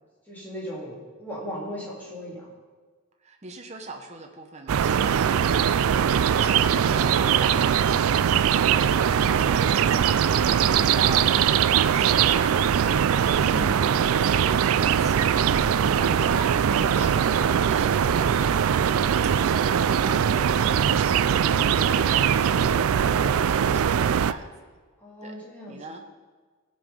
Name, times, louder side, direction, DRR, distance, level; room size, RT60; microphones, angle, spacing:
voice 1, 0.3-2.5 6.8-7.1 10.8-11.2 13.3-13.9 16.7-17.3 21.9-22.2 25.0-25.8, equal, 10° left, -5 dB, 2.6 m, -37 dB
voice 2, 3.2-24.4 25.2-25.4 25.7-26.0, right 3 dB, 30° right, 3 dB, 0.8 m, -41 dB
sound 1, 4.7-24.3, right 8 dB, 70° right, 0.3 m, -21 dB
16.0 x 5.5 x 5.2 m, 1.4 s
head